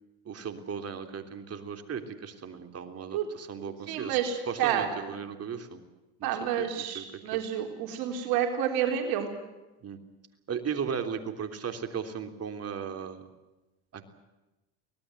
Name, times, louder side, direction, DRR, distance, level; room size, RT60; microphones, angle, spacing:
voice 1, 0.3-4.2 4.5-5.8 6.2-6.7 7.0-7.1 7.3-7.4 9.8-10.0 10.5-13.3 13.9-14.0, right 7 dB, 40° right, 7 dB, 3.4 m, -36 dB
voice 2, 3.9-4.9 6.2-9.3, right 9 dB, 75° right, 4 dB, 4.0 m, -29 dB
24.5 x 19.0 x 7.9 m, 1.0 s
supercardioid pair, 90°, 36 cm